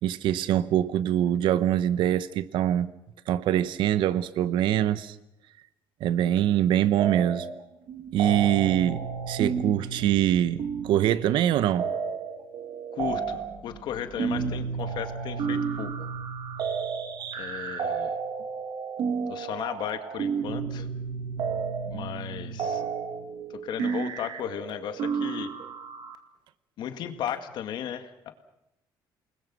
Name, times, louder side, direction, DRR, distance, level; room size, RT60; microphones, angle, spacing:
voice 1, 0.0-2.9 3.3-5.1 6.0-7.5 8.1-11.9, right 11 dB, 75° right, 0.9 m, -24 dB
sound 1, 7.0-7.6 7.9-26.2, right 6 dB, 60° right, 2.3 m, -32 dB
voice 2, 12.9-16.1 17.4-18.1 19.3-20.9 21.9-22.8 23.5-25.5 26.8-28.3, left 9 dB, 65° left, 2.0 m, -35 dB
28.5 x 20.5 x 6.2 m
cardioid pair, 145°, 8 cm